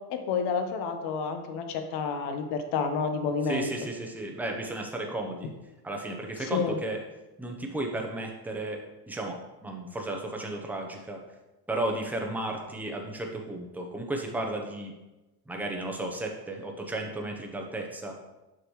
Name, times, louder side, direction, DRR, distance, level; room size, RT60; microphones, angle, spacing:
voice 1, 0.1-3.7 6.4-6.8, left 5 dB, 55° left, 7 dB, 1.0 m, -30 dB
voice 2, 3.4-5.5 5.8-7.0 7.4-8.8 9.1-11.2 11.7-14.9 15.5-18.2, right 2 dB, 5° right, 1 dB, 0.8 m, -34 dB
6.4 x 5.9 x 3.1 m, 1.0 s
supercardioid pair, 115°, 47 cm